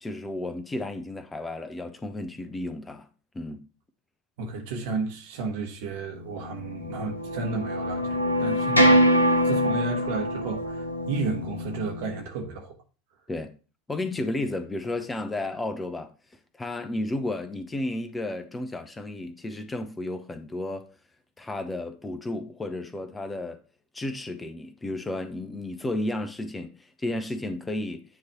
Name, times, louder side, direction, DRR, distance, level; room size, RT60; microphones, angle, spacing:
voice 1, 0.0-3.1 3.3-3.6 13.3-13.5 13.9-16.1 16.6-20.9 21.4-23.6 23.9-28.0, left 2 dB, 15° left, 0.8 m, -32 dB
voice 2, 4.4-12.7, right 4 dB, 60° right, 1.3 m, -33 dB
sound 1, 6.5-12.2, equal, 85° left, 0.9 m, -24 dB
9.6 x 3.2 x 4.2 m
figure-of-eight pair, 75°, 0 cm